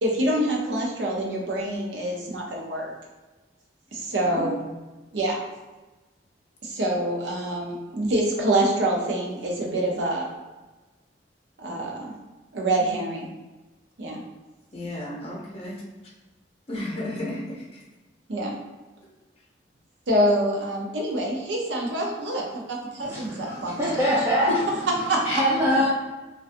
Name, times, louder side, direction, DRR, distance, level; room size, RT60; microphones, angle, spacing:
voice 1, 0.0-2.9 3.9-4.5 5.1-5.4 6.6-10.3 11.6-12.1 12.5-13.3 14.0-14.2 18.3-18.5 20.1-24.0 25.1-25.2, right 1 dB, 75° right, -1 dB, 0.6 m, -26 dB
voice 2, 4.2-4.7 14.7-15.7 16.7-17.8, left 1 dB, 35° left, -4 dB, 0.6 m, -33 dB
voice 3, 23.0-25.9, equal, 15° right, -9 dB, 0.4 m, -24 dB
2.5 x 2.3 x 2.5 m, 1.2 s
head